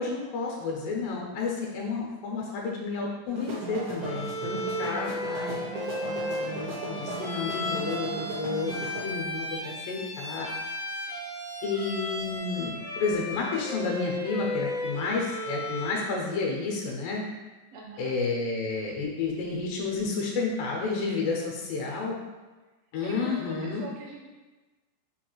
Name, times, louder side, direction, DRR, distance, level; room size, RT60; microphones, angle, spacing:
voice 1, 0.0-5.6 6.1-10.5 11.6-17.2 18.0-22.2 22.9-23.8, left 4 dB, 90° left, -1 dB, 2.3 m, -31 dB
sound 1, 3.3-9.0, right 1 dB, 75° right, 1.4 m, -37 dB
Bowed string instrument, 4.0-16.1, left 1 dB, 70° left, 0.9 m, -35 dB
voice 2, 5.2-6.0 17.7-18.1 21.7-22.2 23.0-24.3, right 3 dB, 90° right, -3 dB, 1.3 m, -44 dB
5.5 x 2.3 x 3.0 m, 1.2 s
omnidirectional pair, 3.8 m